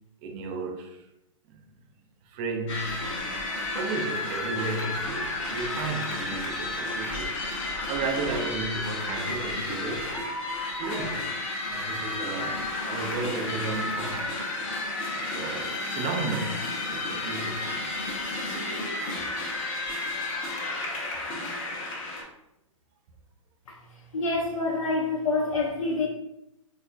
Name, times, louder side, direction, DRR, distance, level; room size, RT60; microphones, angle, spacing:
voice 1, 0.2-1.1 1.5-1.6 2.2-3.1 3.4-3.5 3.7-10.2 10.7-11.3 11.7-14.4 15.1-18.1, right 3 dB, 25° right, 0.3 m, -34 dB
sound 1, 2.7-22.2, left 2 dB, 30° left, 0.7 m, -32 dB
voice 2, 24.1-26.1, left 3 dB, 70° left, 0.6 m, -27 dB
3.4 x 2.4 x 2.3 m
figure-of-eight pair, 120°, 18 cm